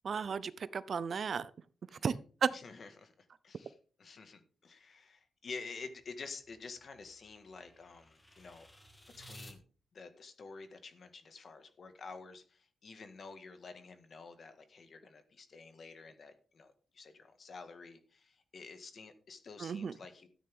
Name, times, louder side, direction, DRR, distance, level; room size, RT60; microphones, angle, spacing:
voice 1, 0.0-1.5 2.0-2.1 2.4-2.5 19.6-19.9, right 6 dB, 60° right, 17 dB, 0.6 m, -33 dB
voice 2, 2.5-8.7 9.2-9.6 9.9-20.3, left 4 dB, 55° left, 8 dB, 1.8 m, -50 dB
sound 1, 5.9-9.6, equal, 20° left, 2.4 m, -57 dB
13.0 x 9.4 x 3.7 m, 0.41 s
cardioid pair, 105°, 0 cm